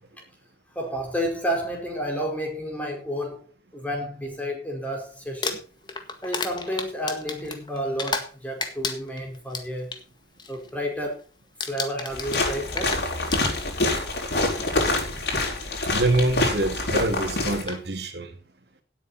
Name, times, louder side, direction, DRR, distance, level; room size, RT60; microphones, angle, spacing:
voice 1, 0.7-3.5 3.7-5.6 6.2-10.0 10.5-11.2 11.7-13.0 15.1-15.2, equal, 10° left, 1 dB, 4.7 m, -31 dB
Crumpling crinkling, 5.3-8.3 8.6-10.0 10.4-10.7 11.0-11.3 11.6-14.0 14.9-15.0 17.0-17.1 17.5-17.8, left 4 dB, 25° left, 1.7 m, -32 dB
sound 1, 12.1-17.6, left 2 dB, 75° left, 4.8 m, -26 dB
voice 2, 15.9-18.3, right 2 dB, 80° right, 6 dB, 2.4 m, -25 dB
17.5 x 8.6 x 4.3 m, 0.34 s
head